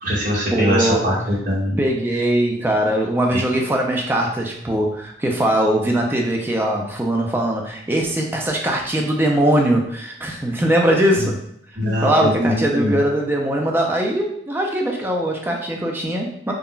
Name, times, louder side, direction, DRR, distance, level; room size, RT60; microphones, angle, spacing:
voice 1, 0.0-1.8 3.3-3.4 11.8-13.0, equal, 45° right, -6 dB, 1.2 m, -22 dB
voice 2, 0.5-1.2 1.8-11.4 11.8-16.5, right 1 dB, 10° right, 0 dB, 0.4 m, -21 dB
2.4 x 2.1 x 3.7 m, 0.72 s
head